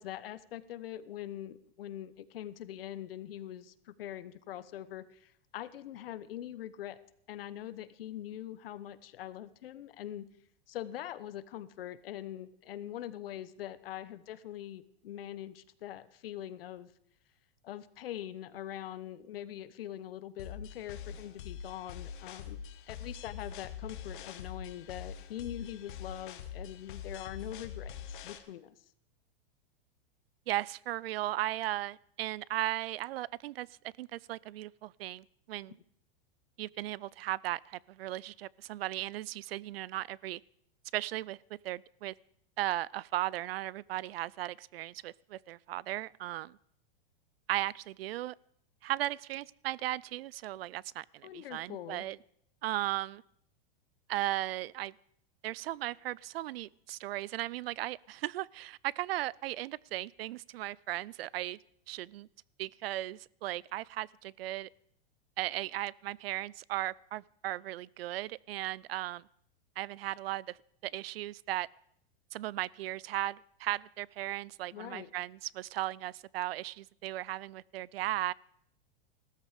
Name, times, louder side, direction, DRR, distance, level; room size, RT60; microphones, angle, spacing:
voice 1, 0.0-7.0 7.3-10.2 10.7-16.9 17.6-22.6 22.9-28.7 51.2-52.1 74.7-75.1, left 12 dB, 75° left, 15 dB, 1.0 m, -43 dB
sound 1, 20.4-28.4, left 8 dB, 55° left, 1.3 m, -44 dB
voice 2, 30.5-33.7 34.0-35.8 36.6-40.4 40.9-42.1 42.6-46.6 47.5-48.3 48.8-52.2 52.6-53.2 54.1-54.9 55.4-61.6 61.9-62.3 62.6-64.7 65.4-69.2 69.8-70.6 70.8-71.7 72.3-78.3, right 15 dB, 85° right, 25 dB, 0.5 m, -36 dB
16.0 x 13.0 x 5.0 m, 0.69 s
supercardioid pair, 180°, 29 cm